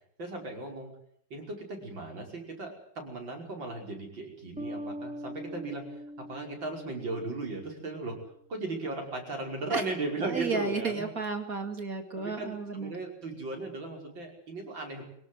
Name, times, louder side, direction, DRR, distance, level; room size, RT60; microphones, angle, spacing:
voice 1, 0.2-0.9 1.3-8.2 8.5-11.1 12.2-15.0, right 3 dB, 85° right, 1 dB, 6.2 m, -37 dB
sound 1, 4.6-7.9, equal, 10° right, 0.3 m, -42 dB
voice 2, 10.2-12.9, right 4 dB, 50° right, 6 dB, 2.8 m, -33 dB
24.0 x 17.5 x 7.9 m, 0.69 s
omnidirectional pair, 2.0 m